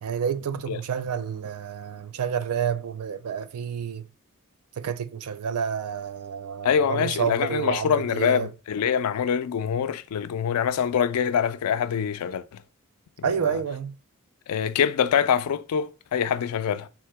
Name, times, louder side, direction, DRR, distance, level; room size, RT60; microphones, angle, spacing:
voice 1, 0.0-4.0 4.8-8.5 13.2-13.9, right 7 dB, 85° right, 0.4 m, -29 dB
voice 2, 6.6-12.6 13.2-13.6 14.5-16.9, left 8 dB, 90° left, 0.4 m, -25 dB
3.6 x 2.8 x 4.7 m
head